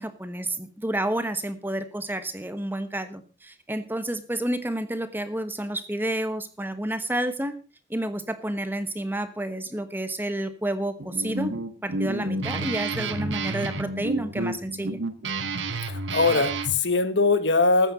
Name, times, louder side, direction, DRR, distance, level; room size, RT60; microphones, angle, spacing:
voice 1, 0.0-7.6 7.9-11.5 11.8-15.0, right 1 dB, 10° right, 11 dB, 1.1 m, -30 dB
Guitar, 11.0-16.8, right 3 dB, 85° right, 1.4 m, -30 dB
voice 2, 15.9-17.9, left 3 dB, 75° left, 11 dB, 1.5 m, -21 dB
14.0 x 9.1 x 5.2 m, 0.33 s
head